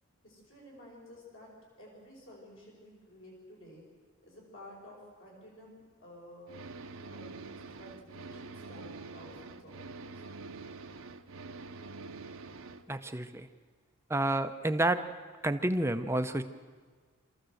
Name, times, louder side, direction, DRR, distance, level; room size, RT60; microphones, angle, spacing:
voice 1, 0.2-1.5 1.8-3.8 4.2-6.6 7.1-7.5 7.8-10.3, left 1 dB, 60° left, -3 dB, 5.4 m, -52 dB
sound 1, 6.5-12.8, right 3 dB, 70° right, 1.0 m, -46 dB
voice 2, 12.9-13.5 14.1-15.0 15.4-16.4, right 1 dB, 10° right, 9 dB, 0.6 m, -29 dB
26.0 x 14.0 x 7.8 m, 1.5 s
head